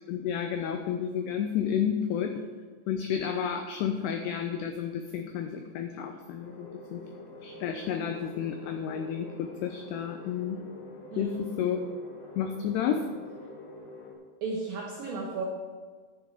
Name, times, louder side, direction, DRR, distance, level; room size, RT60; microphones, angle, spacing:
voice 1, 0.1-2.4 2.9-7.0 7.4-10.6 11.2-11.9 12.4-13.1, left 8 dB, 90° left, 6 dB, 2.3 m, -31 dB
sound 1, 6.4-14.2, left 2 dB, 70° left, 3.3 m, -46 dB
voice 2, 14.4-15.4, right 4 dB, 85° right, -1 dB, 2.0 m, -34 dB
11.0 x 9.3 x 3.5 m, 1.5 s
omnidirectional pair, 5.4 m